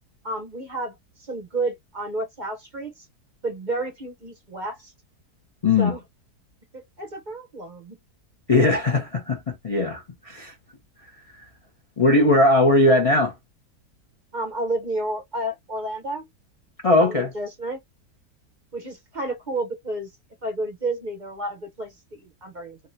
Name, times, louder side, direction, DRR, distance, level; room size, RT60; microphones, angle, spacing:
voice 1, 0.2-3.1 3.4-4.9 5.8-6.0 6.7-8.0 14.3-16.3 17.0-17.8 18.7-20.1 20.4-22.8, right 2 dB, 40° right, 0.7 m, -31 dB
voice 2, 5.6-5.9 8.5-10.5 12.0-13.3 16.8-17.3, left 2 dB, 50° left, 0.4 m, -19 dB
3.5 x 2.4 x 2.6 m
omnidirectional pair, 1.7 m